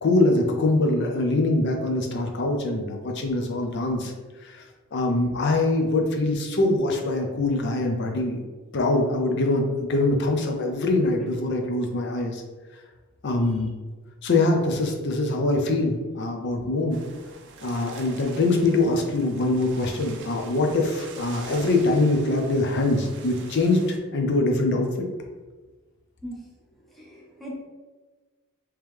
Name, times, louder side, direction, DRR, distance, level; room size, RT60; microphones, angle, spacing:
voice 1, 0.0-4.1 4.4-8.4 8.7-12.4 12.7-12.8 13.2-13.8 14.2-17.0 17.6-24.9, left 2 dB, 50° left, 3 dB, 0.5 m, -23 dB
sound 1, 16.9-24.0, right 4 dB, 55° right, 0.4 m, -45 dB
voice 2, 26.2-27.6, equal, ahead, -4 dB, 0.7 m, -41 dB
3.6 x 2.9 x 3.2 m, 1.3 s
head